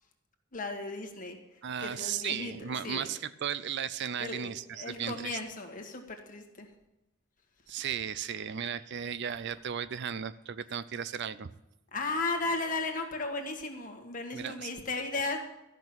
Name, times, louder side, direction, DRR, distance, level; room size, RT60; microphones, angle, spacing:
voice 1, 0.5-1.4 1.8-3.1 4.2-6.7 11.9-15.4, left 3 dB, 40° left, 3 dB, 1.7 m, -35 dB
voice 2, 1.6-5.4 7.7-11.5 14.3-14.7, right 8 dB, 55° right, 15 dB, 0.5 m, -35 dB
13.5 x 6.1 x 8.7 m, 0.96 s
head